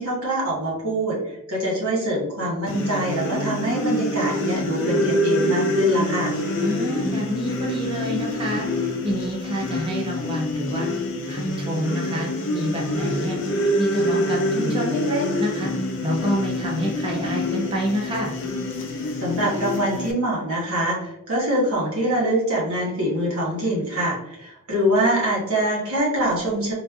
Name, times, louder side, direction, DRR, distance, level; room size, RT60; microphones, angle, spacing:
voice 1, 0.0-6.3 19.2-26.7, right 1 dB, 85° right, -4 dB, 1.2 m, -24 dB
sound 1, 2.7-20.1, left 1 dB, 55° left, 0.5 m, -26 dB
voice 2, 6.6-8.7 9.0-10.9 11.3-13.4 13.8-15.7 16.0-18.3, equal, 25° right, -2 dB, 0.5 m, -27 dB
4.0 x 2.5 x 2.3 m, 0.84 s
head